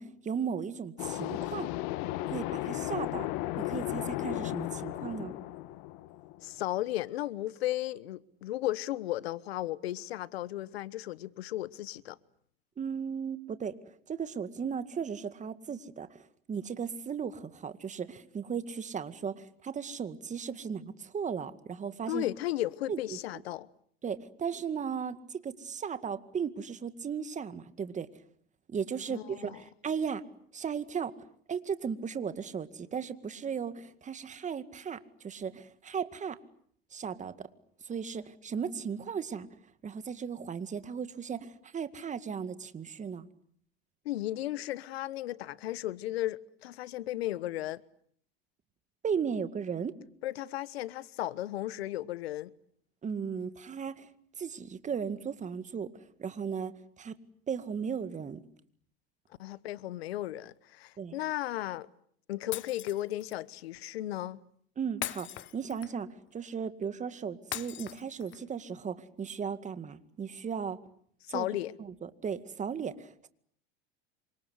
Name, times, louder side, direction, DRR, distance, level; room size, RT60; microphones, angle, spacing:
voice 1, 0.0-1.7 2.3-3.3 3.6-5.3 12.8-13.8 14.1-22.3 22.9-23.2 24.0-28.1 28.7-30.2 30.5-31.1 31.5-36.4 36.9-37.3 37.8-39.5 39.8-43.3 49.0-50.0 53.0-54.1 54.4-55.9 56.2-57.2 57.5-58.4 61.0-61.2 64.8-70.8 71.3-71.5 71.8-73.3, right 6 dB, 25° right, 2.1 m, -36 dB
sound 1, 1.0-6.7, left 16 dB, 60° left, 1.9 m, -35 dB
voice 2, 6.4-12.2 22.1-23.7 29.1-29.6 44.0-47.8 50.2-52.5 59.4-61.9 62.3-64.4 71.3-71.7, left 15 dB, 85° left, 1.2 m, -35 dB
Shatter, 62.5-63.4 65.0-66.1 67.5-68.5, left 14 dB, 40° left, 1.1 m, -40 dB
27.5 x 25.5 x 8.1 m
supercardioid pair, 110°, 30 cm